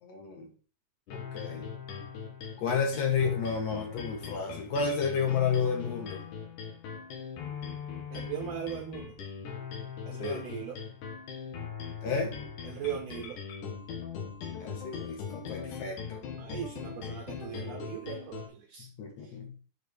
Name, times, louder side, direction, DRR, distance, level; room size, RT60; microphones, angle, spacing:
voice 1, 0.0-0.5 1.1-1.7 2.6-6.2 10.1-10.4 12.0-12.3 14.6-16.2 18.8-19.5, left 5 dB, 60° left, 2 dB, 2.2 m, -31 dB
sound 1, 1.1-18.5, left 7 dB, 75° left, 2.5 m, -40 dB
voice 2, 8.1-9.1 10.1-10.8 12.6-13.4 16.4-18.9 19.2-19.3, right 9 dB, 80° right, 4 dB, 1.5 m, -39 dB
9.1 x 3.3 x 3.2 m, 0.39 s
omnidirectional pair, 3.7 m